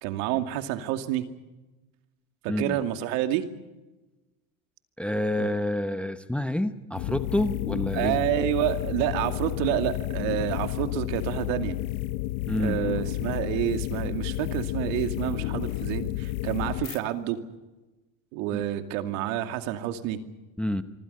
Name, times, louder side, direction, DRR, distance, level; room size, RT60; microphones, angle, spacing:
voice 1, 0.0-1.2 2.4-3.4 5.4-5.5 7.9-11.8 12.6-17.4 18.3-20.2, right 12 dB, 70° right, 7 dB, 2.5 m, -28 dB
voice 2, 5.0-8.2 12.5-12.8 18.5-18.6 20.6-20.8, left 1 dB, 5° left, 10 dB, 0.9 m, -28 dB
sound 1, 6.9-17.0, left 17 dB, 65° left, 1.0 m, -31 dB
25.5 x 25.5 x 5.6 m, 1.1 s
cardioid pair, 145°, 40 cm